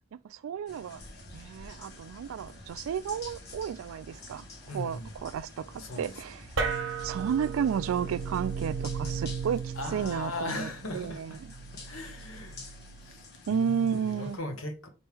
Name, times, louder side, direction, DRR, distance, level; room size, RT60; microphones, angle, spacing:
voice 1, 0.2-1.0 1.3-4.5 4.7-6.5 7.0-11.5 13.5-14.4, right 7 dB, 85° right, 0.3 m, -32 dB
sound 1, 0.7-14.4, left 3 dB, 55° left, 1.2 m, -50 dB
sound 2, 1.0-10.3, right 1 dB, 5° left, 1.0 m, -52 dB
voice 2, 4.7-5.1 5.8-6.1 9.8-11.4 11.8-12.6 13.0-14.9, left 1 dB, 85° left, 1.1 m, -38 dB
sound 3, 6.6-13.3, right 5 dB, 70° right, 1.0 m, -36 dB
4.3 x 3.1 x 3.3 m
head